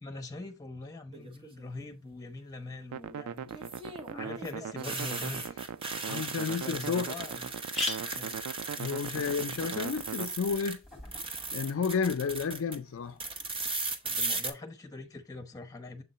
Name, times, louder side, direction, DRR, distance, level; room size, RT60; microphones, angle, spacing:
voice 1, 0.0-3.5 4.1-5.6 6.1-7.5 8.1-8.4 14.0-16.0, left 2 dB, 15° left, 1.0 m, -43 dB
sound 1, 1.1-1.6 3.5-10.8 11.0-12.8 13.2-14.5, right 3 dB, 25° right, 0.8 m, -37 dB
sound 2, 2.9-10.3, right 8 dB, 85° right, 0.3 m, -40 dB
voice 2, 6.1-7.1 8.3-8.4 8.8-10.8 11.5-13.2, left 5 dB, 65° left, 0.4 m, -31 dB
sound 3, 6.7-6.8 7.0-7.1 7.5-11.2, left 2 dB, ahead, 2.1 m, -40 dB
7.3 x 3.7 x 4.1 m
head